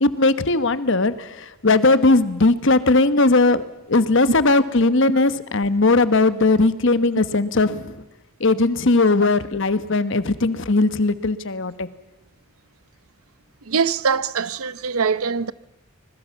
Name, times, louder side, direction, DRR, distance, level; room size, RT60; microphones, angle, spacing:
voice 1, 0.0-1.3 1.6-3.6 3.9-7.9 8.4-11.9, left 3 dB, 60° left, 1.2 m, -18 dB
voice 2, 13.7-15.5, right 5 dB, 90° right, 0.8 m, -22 dB
25.5 x 21.0 x 7.1 m
head